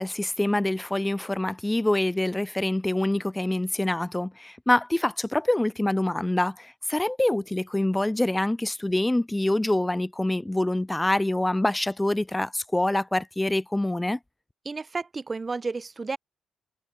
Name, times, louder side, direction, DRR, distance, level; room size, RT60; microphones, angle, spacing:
voice 1, 0.0-14.2, left 1 dB, 10° left, 4.4 m, -25 dB
voice 2, 14.6-16.2, right 4 dB, 30° right, 7.9 m, -32 dB
cardioid pair, 90°, 0 cm